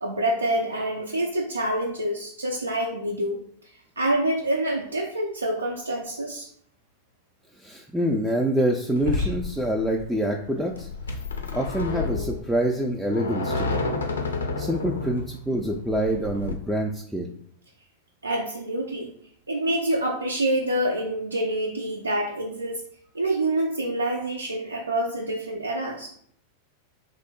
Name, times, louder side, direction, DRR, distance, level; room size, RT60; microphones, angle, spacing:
voice 1, 0.0-3.4 4.0-6.5 9.2-9.3 18.2-19.1 19.5-22.8 23.1-26.1, right 1 dB, 80° right, -1 dB, 0.4 m, -26 dB
voice 2, 7.6-10.9 11.5-13.9 14.6-17.3, right 1 dB, 5° right, 0 dB, 0.3 m, -26 dB
sound 1, 9.0-16.5, left 3 dB, 70° left, 0.4 m, -30 dB
3.0 x 2.0 x 3.6 m, 0.63 s
figure-of-eight pair, 90°, 0 cm